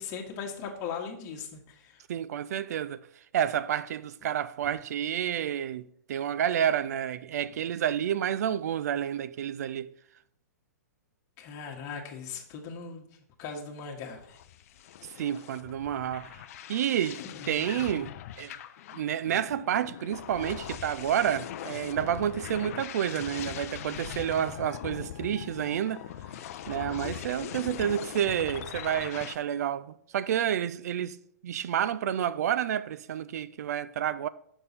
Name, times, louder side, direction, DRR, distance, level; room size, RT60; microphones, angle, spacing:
voice 1, 0.0-2.0 11.4-13.1 13.4-14.4 17.3-17.5, left 6 dB, 35° left, 1.5 m, -39 dB
voice 2, 2.1-3.1 3.3-9.9 15.2-16.4 16.7-18.5 18.9-26.0 26.7-31.2 31.4-34.3, right 10 dB, 65° right, 0.4 m, -30 dB
sound 1, 14.1-29.4, left 11 dB, 55° left, 0.5 m, -41 dB
6.7 x 5.4 x 4.3 m
hypercardioid pair, 135°, 9 cm